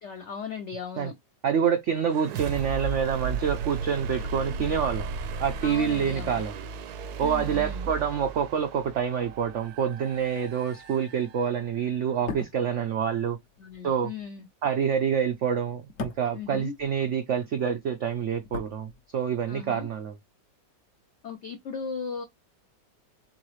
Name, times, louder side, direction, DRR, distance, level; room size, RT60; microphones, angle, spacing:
voice 1, 0.0-1.1 5.6-6.5 7.2-7.9 13.6-14.5 16.3-16.7 19.5-19.9 21.2-22.2, left 6 dB, 80° left, 0.6 m, -37 dB
voice 2, 1.4-5.1 5.4-6.7 7.2-13.4 13.8-14.1 14.6-20.2, right 7 dB, 85° right, 0.6 m, -27 dB
sound 1, 2.1-11.8, right 4 dB, 70° right, 1.0 m, -35 dB
sound 2, 12.1-17.4 17.7-19.5 19.8-19.9, left 4 dB, 55° left, 0.9 m, -41 dB
3.9 x 3.8 x 3.1 m
omnidirectional pair, 2.0 m